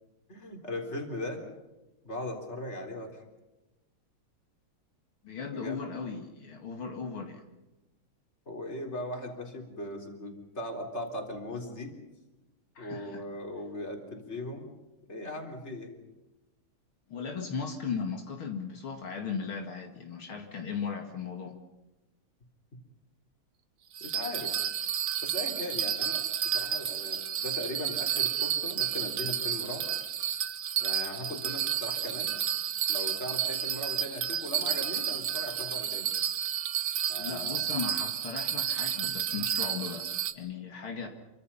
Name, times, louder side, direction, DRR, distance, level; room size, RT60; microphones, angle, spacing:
voice 1, 0.3-1.4 2.0-3.2 5.4-5.8 8.5-11.9 12.8-14.7 15.1-15.9 24.0-24.5 25.2-29.9 30.8-32.4 32.9-36.1 37.1-37.7, left 1 dB, 30° left, 2 dB, 4.3 m, -39 dB
voice 2, 5.2-7.4 12.8-13.2 17.1-21.6 37.2-40.1 40.4-41.1, left 5 dB, 75° left, 3 dB, 3.0 m, -37 dB
Bell, 24.0-40.3, right 9 dB, 85° right, 2.2 m, -31 dB
28.5 x 24.5 x 5.7 m, 1.0 s
omnidirectional pair, 2.3 m